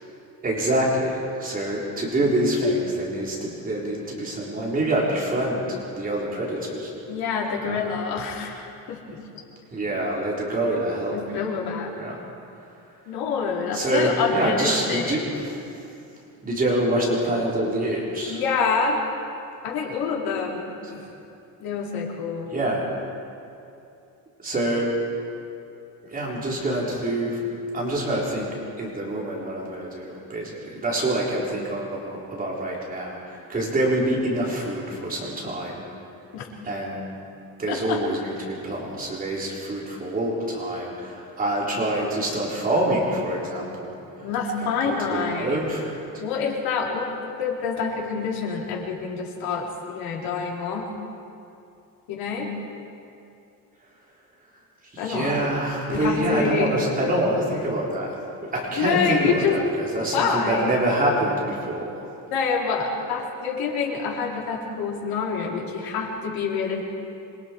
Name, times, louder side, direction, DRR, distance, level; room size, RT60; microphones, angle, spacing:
voice 1, 0.4-6.9 7.6-7.8 9.7-11.4 11.9-12.2 13.7-15.6 16.4-18.4 20.8-21.1 22.5-22.8 24.4-24.9 26.1-27.4 27.7-28.5 28.8-35.8 36.6-37.1 37.6-44.3 44.6-45.9 54.9-62.1, right 1 dB, 25° right, -4 dB, 4.4 m, -26 dB
voice 2, 7.1-9.5 11.1-11.9 13.1-15.2 18.3-19.0 19.6-20.8 21.6-22.5 36.3-36.4 37.7-38.0 44.2-45.6 46.2-47.1 47.4-50.9 52.1-52.5 55.0-55.3 55.9-56.7 58.8-59.6 60.1-60.7 62.3-66.8, left 5 dB, 80° left, -2 dB, 4.2 m, -27 dB
26.5 x 23.5 x 4.7 m, 2.7 s
cardioid pair, 150°, 36 cm